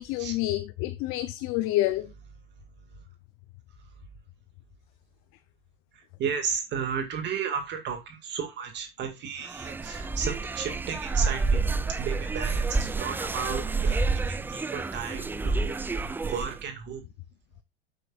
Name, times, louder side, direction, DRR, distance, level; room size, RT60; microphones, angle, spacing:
voice 1, 0.0-2.1, left 16 dB, 45° left, 0.8 m, -28 dB
voice 2, 6.2-11.6 12.0-17.0, right 7 dB, 35° right, 2.2 m, -34 dB
sound 1, 9.4-16.6, right 4 dB, 5° right, 0.4 m, -29 dB
9.9 x 8.4 x 2.5 m
hypercardioid pair, 115°, 30 cm